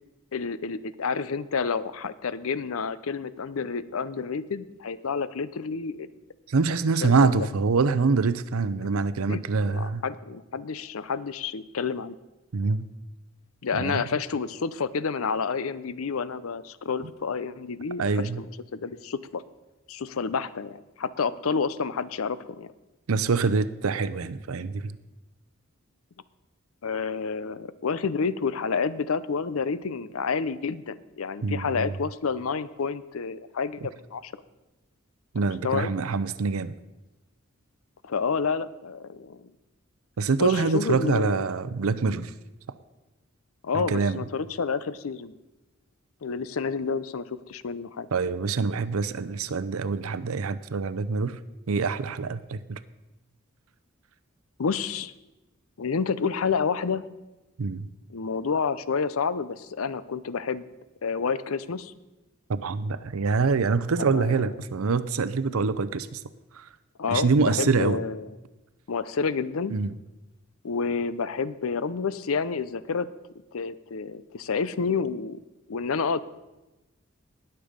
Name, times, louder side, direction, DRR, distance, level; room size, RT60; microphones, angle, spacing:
voice 1, 0.3-6.1 7.0-7.5 8.8-9.0 9.3-12.2 13.6-19.4 19.9-22.7 26.8-34.3 35.6-35.9 38.0-39.5 40.4-41.4 43.6-45.3 46.2-48.1 54.6-55.1 55.8-57.1 58.1-60.7 61.0-61.9 64.1-64.4 67.0-68.3 68.9-69.7 70.6-73.1 73.5-75.4 75.7-76.2, left 5 dB, 85° left, 16 dB, 0.6 m, -29 dB
voice 2, 6.5-10.0 12.5-12.9 13.7-14.0 18.0-18.4 23.1-24.9 31.4-32.0 35.3-36.7 40.2-42.3 43.7-44.2 48.1-51.4 51.7-52.8 57.6-57.9 62.5-66.2 66.5-66.7 67.1-68.0 69.7-69.9, right 4 dB, 90° right, 14 dB, 0.6 m, -25 dB
19.0 x 6.8 x 5.1 m, 1.0 s
head